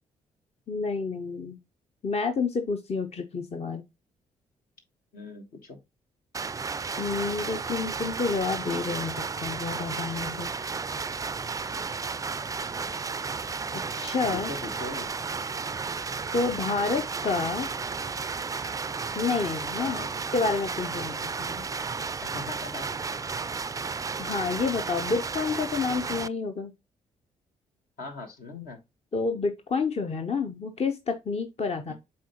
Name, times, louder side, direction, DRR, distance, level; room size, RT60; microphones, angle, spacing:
voice 1, 0.7-1.6 2.0-3.8 7.0-10.5 13.7-14.5 16.3-17.7 19.2-20.0 20.3-21.6 24.2-26.7 29.1-31.9, left 4 dB, 40° left, 0.8 m, -29 dB
voice 2, 5.1-5.8 14.3-15.1 19.8-20.1 22.2-23.1 28.0-28.8 31.9-32.0, left 3 dB, 65° left, 1.5 m, -40 dB
sound 1, 6.3-26.3, right 5 dB, 20° right, 0.4 m, -33 dB
7.3 x 4.4 x 2.9 m
hypercardioid pair, 40°, 17 cm